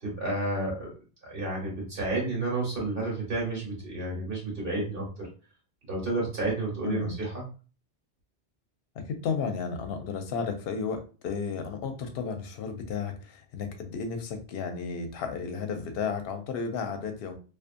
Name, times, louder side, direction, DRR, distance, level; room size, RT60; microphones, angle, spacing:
voice 1, 0.0-0.9 1.2-5.3 5.9-7.4, right 2 dB, 60° right, -3 dB, 1.2 m, -31 dB
voice 2, 9.1-17.3, left 5 dB, 70° left, 6 dB, 0.7 m, -33 dB
2.4 x 2.4 x 2.5 m, 0.35 s
omnidirectional pair, 1.1 m